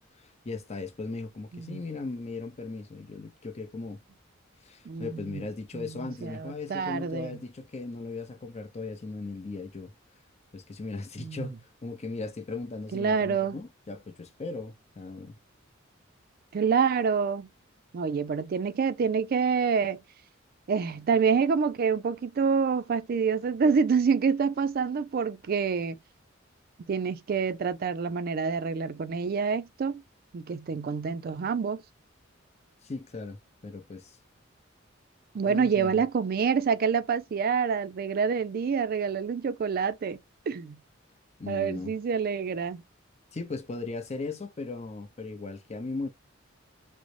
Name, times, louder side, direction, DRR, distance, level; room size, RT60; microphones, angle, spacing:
voice 1, 0.2-4.0 4.6-9.9 10.5-15.3 32.8-33.4 33.6-34.2 35.4-36.0 41.4-41.9 43.3-46.1, left 3 dB, 35° left, 0.6 m, -37 dB
voice 2, 4.9-5.4 5.7-7.4 11.2-11.5 12.9-13.6 16.5-17.5 17.9-20.0 20.7-26.0 26.9-30.0 30.3-31.8 35.3-40.2 40.5-40.8 41.5-42.8, right 6 dB, 50° right, 0.4 m, -27 dB
3.8 x 2.0 x 3.1 m
head